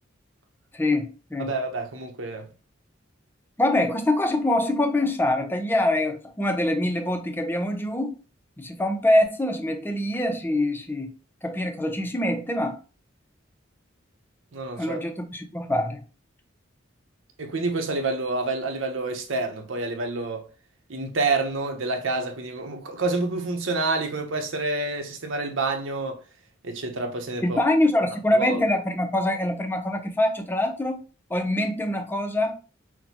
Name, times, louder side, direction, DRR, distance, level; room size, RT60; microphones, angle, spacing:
voice 1, 0.7-1.5 3.6-8.2 8.6-11.1 11.4-12.8 14.8-16.0 27.4-31.0 31.3-32.6, left 1 dB, 10° left, 0.5 m, -24 dB
voice 2, 1.4-2.5 14.5-15.0 17.4-20.5 20.9-26.2 26.6-27.6 28.3-28.6, right 3 dB, 85° right, 0.8 m, -28 dB
6.0 x 2.1 x 2.9 m
head